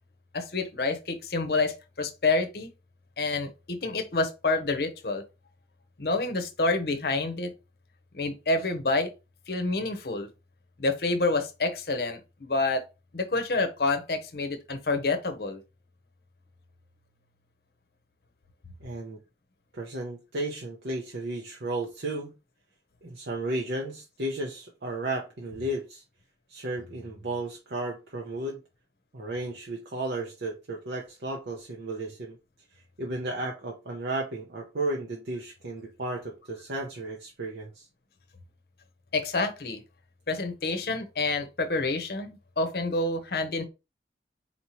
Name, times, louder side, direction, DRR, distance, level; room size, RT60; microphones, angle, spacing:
voice 1, 0.3-2.7 3.2-5.2 6.0-7.5 8.1-9.1 9.5-10.3 10.8-12.8 13.1-15.6 39.1-39.8 40.3-43.7, left 3 dB, 60° left, 0.7 m, -28 dB
voice 2, 18.8-19.2 19.7-22.3 23.0-26.0 26.5-28.6 29.1-32.4 32.7-37.9, right 2 dB, 70° right, 0.7 m, -34 dB
4.3 x 2.9 x 3.0 m
head